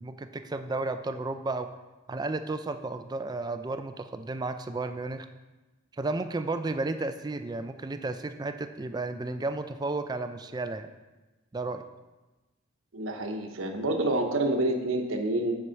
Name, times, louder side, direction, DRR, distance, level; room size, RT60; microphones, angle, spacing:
voice 1, 0.0-1.7 2.1-5.3 5.9-10.9 11.5-11.8, right 2 dB, 20° right, 9 dB, 0.4 m, -33 dB
voice 2, 12.9-15.5, right 1 dB, 80° right, 4 dB, 1.0 m, -28 dB
8.0 x 4.7 x 5.6 m, 1.1 s
head